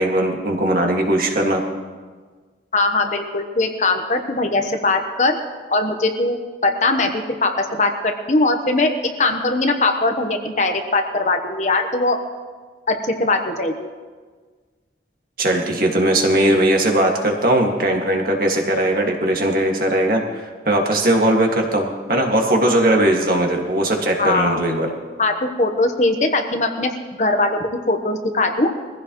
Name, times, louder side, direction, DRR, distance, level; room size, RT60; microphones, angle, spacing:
voice 1, 0.0-1.6 15.4-24.9, right 1 dB, 50° right, 1 dB, 2.0 m, -19 dB
voice 2, 2.7-5.4 5.7-6.4 6.6-8.9 9.2-12.2 12.9-13.9 24.2-24.6 25.2-26.9 27.2-28.7, left 2 dB, 40° left, 5 dB, 1.1 m, -20 dB
22.0 x 15.5 x 3.1 m, 1.5 s
head